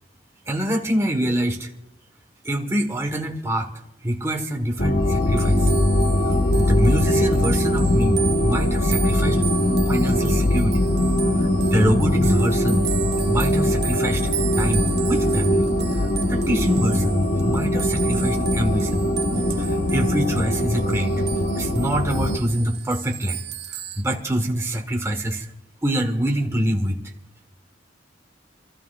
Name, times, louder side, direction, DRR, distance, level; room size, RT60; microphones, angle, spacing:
voice 1, 0.5-1.7 2.4-3.7 4.0-5.7 6.3-9.4 9.9-10.8 11.4-12.9 13.2-15.7 15.9-19.0 19.6-21.1 21.6-23.4 24.0-25.5 25.8-27.0, right 1 dB, 15° right, 2 dB, 1.4 m, -25 dB
sound 1, 4.8-22.4, left 1 dB, 60° left, 1.1 m, -21 dB
sound 2, 5.0-24.0, right 10 dB, 55° right, 1.0 m, -35 dB
28.5 x 13.5 x 2.5 m, 0.87 s
head